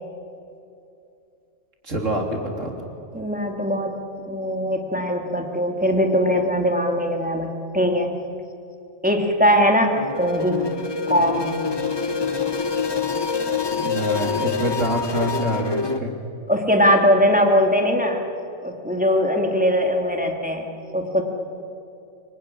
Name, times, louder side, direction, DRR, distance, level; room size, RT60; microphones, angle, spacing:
voice 1, 1.8-2.8 13.8-16.1, right 1 dB, 65° right, 2 dB, 3.6 m, -26 dB
voice 2, 3.1-8.2 9.0-10.7 11.1-11.6 16.5-18.3 18.6-20.7 20.9-21.2, equal, 5° right, 2 dB, 2.5 m, -21 dB
sound 1, 10.0-16.0, left 5 dB, 20° left, 1.0 m, -26 dB
25.5 x 23.5 x 9.9 m, 2.7 s
omnidirectional pair, 1.4 m